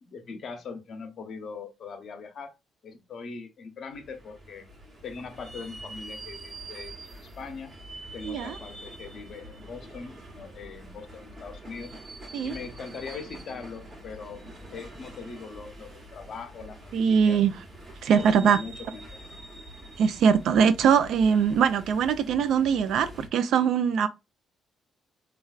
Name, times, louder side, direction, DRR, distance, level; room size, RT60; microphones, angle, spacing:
voice 1, 0.0-2.5 2.8-4.7 5.0-7.8 8.1-11.9 12.4-14.4 14.7-17.4 18.2-19.2, left 5 dB, 55° left, 0.7 m, -41 dB
sound 1, 3.9-23.3, right 1 dB, 35° right, 1.0 m, -45 dB
voice 2, 8.2-8.5 12.3-12.5 16.9-17.5 18.0-18.6 20.0-24.1, right 7 dB, 75° right, 0.4 m, -22 dB
3.2 x 2.3 x 2.3 m
cardioid pair, 90°, 0 cm